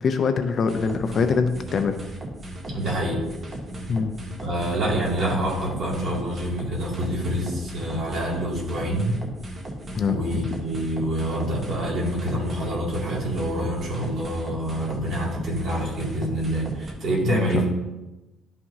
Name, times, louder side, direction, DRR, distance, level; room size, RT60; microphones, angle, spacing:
voice 1, 0.0-2.0 3.9-4.1 9.9-10.2 17.2-17.6, left 5 dB, 35° left, 8 dB, 0.4 m, -23 dB
sound 1, 0.7-16.9, right 1 dB, 25° right, 1.0 m, -36 dB
voice 2, 2.7-3.2 4.4-9.2 10.1-17.7, right 1 dB, 40° right, -4 dB, 2.4 m, -27 dB
11.5 x 5.7 x 2.7 m, 1.0 s
cardioid pair, 175°, 0 cm